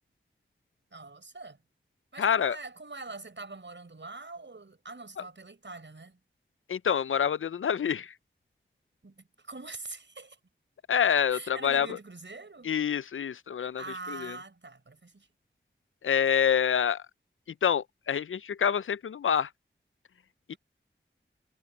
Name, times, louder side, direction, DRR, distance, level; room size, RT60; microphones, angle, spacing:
voice 1, 0.9-1.6 2.1-6.2 9.0-10.4 11.3-12.7 13.6-15.3 20.5-20.6, right 3 dB, 65° right, 6.2 m, -44 dB
voice 2, 2.2-2.6 6.7-8.1 10.9-11.9 12.6-13.8 14.1-14.4 16.0-17.0 17.6-19.5 20.5-20.6, left 8 dB, 85° left, 0.4 m, -27 dB
wide cardioid pair, 65°, 20 cm